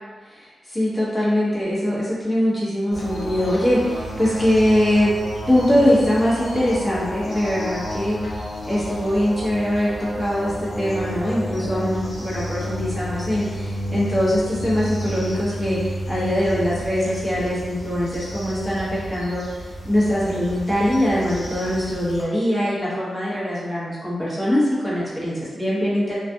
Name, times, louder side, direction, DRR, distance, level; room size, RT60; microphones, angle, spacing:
voice 1, 0.3-5.1 5.4-26.2, equal, 25° left, -8 dB, 0.9 m, -22 dB
sound 1, 2.9-22.2, equal, 70° left, 0.7 m, -31 dB
2.4 x 2.2 x 2.6 m, 1.4 s
cardioid pair, 85°, 0 cm